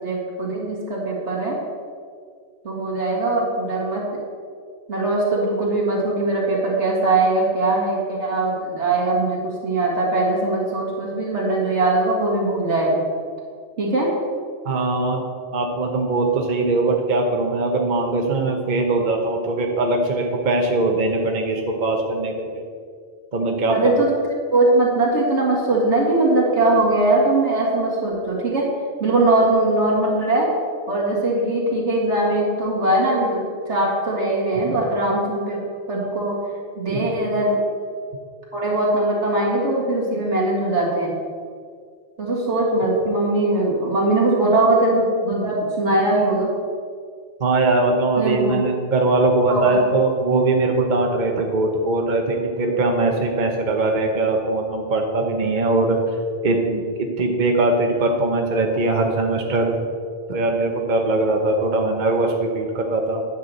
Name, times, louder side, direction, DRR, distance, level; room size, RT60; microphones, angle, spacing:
voice 1, 0.0-1.6 2.6-4.1 4.9-13.1 13.8-14.1 23.7-24.1 24.5-28.7 29.0-30.5 30.9-35.6 35.9-36.4 36.7-37.6 38.5-41.1 42.2-46.5 48.2-48.5 49.5-49.8, right 2 dB, 85° right, -4 dB, 2.3 m, -21 dB
voice 2, 14.6-15.2 15.5-22.6 23.3-24.0 34.7-34.8 36.9-37.1 47.4-56.0 56.4-59.8 60.3-63.2, right 2 dB, 45° right, 2 dB, 1.0 m, -21 dB
9.8 x 4.8 x 7.6 m, 2.1 s
omnidirectional pair, 1.2 m